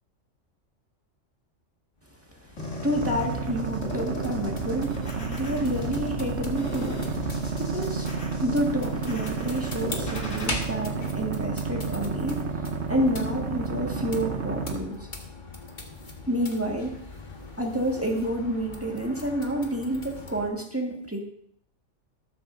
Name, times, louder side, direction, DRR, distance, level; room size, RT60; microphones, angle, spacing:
sound 1, 2.0-20.5, left 2 dB, 40° left, 1.6 m, -41 dB
sound 2, 2.6-10.5, left 2 dB, 75° left, 2.9 m, -39 dB
voice 1, 2.7-8.1 8.4-12.5 12.9-15.1 16.3-17.0 17.6-21.2, equal, 10° right, 0 dB, 1.7 m, -29 dB
sound 3, 2.9-14.8, right 5 dB, 65° right, 1.3 m, -31 dB
13.5 x 13.0 x 2.7 m, 0.69 s
omnidirectional pair, 1.3 m